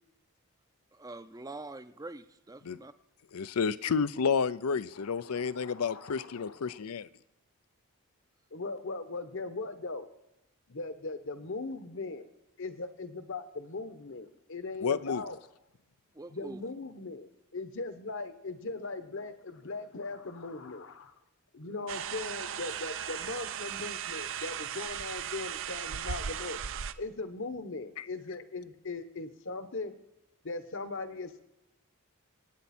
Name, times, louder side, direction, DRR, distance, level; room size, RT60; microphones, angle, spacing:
voice 1, 0.9-2.9 16.1-16.6, right 2 dB, 15° right, 12 dB, 0.6 m, -44 dB
voice 2, 3.3-7.1 14.8-15.2, left 5 dB, 80° left, 15 dB, 0.5 m, -30 dB
voice 3, 4.9-6.8 8.5-10.1 10.7-12.2 12.6-15.4 16.3-21.1 21.5-26.6 27.0-30.0 30.4-31.4, left 3 dB, 60° left, 10 dB, 1.1 m, -39 dB
sound 1, 21.9-26.9, right 8 dB, 60° right, 0.6 m, -37 dB
25.0 x 9.4 x 4.3 m, 0.91 s
head